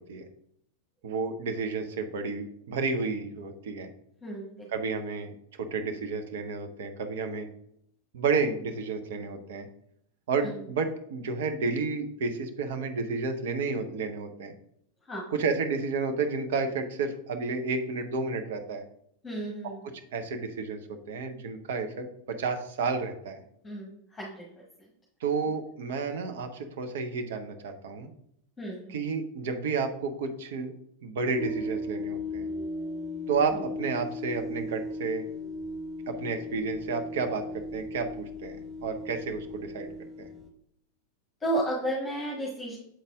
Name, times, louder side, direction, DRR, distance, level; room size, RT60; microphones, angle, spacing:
voice 1, 1.0-3.9 4.7-5.3 5.6-7.5 8.1-9.7 10.3-14.5 15.3-18.8 19.8-23.4 25.2-28.1 28.9-30.7 31.0-32.5 33.3-35.2 36.1-39.9 40.2-40.3, right 4 dB, 55° right, 6 dB, 0.8 m, -31 dB
voice 2, 4.2-4.7 10.4-10.7 15.0-15.3 19.2-19.8 23.6-24.4 28.6-28.9 33.5-33.6 41.4-42.8, right 1 dB, 15° left, -3 dB, 1.4 m, -33 dB
sound 1, 31.4-40.5, left 1 dB, 15° right, 1.1 m, -36 dB
7.6 x 4.1 x 3.5 m, 0.72 s
figure-of-eight pair, 90°, 0 cm